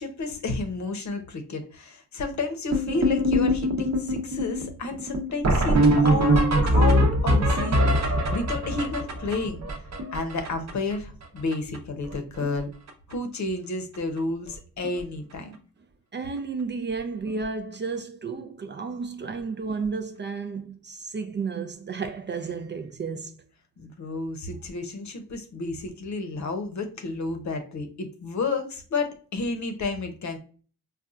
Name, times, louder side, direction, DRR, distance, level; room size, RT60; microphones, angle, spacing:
voice 1, 0.0-9.6 10.1-12.7 13.1-15.5 23.8-30.4, left 3 dB, 55° left, 0.8 m, -31 dB
sound 1, 2.7-10.9 11.2-11.3 11.5-11.8 12.0-12.6 12.9-13.1 13.9-14.0 14.5-14.6 14.8-15.0 17.3-17.4 19.7-19.8, equal, 50° right, 0.8 m, -23 dB
voice 2, 16.1-23.4, right 4 dB, 35° right, 0.4 m, -32 dB
4.1 x 2.3 x 2.4 m
cardioid pair, 85°, 35 cm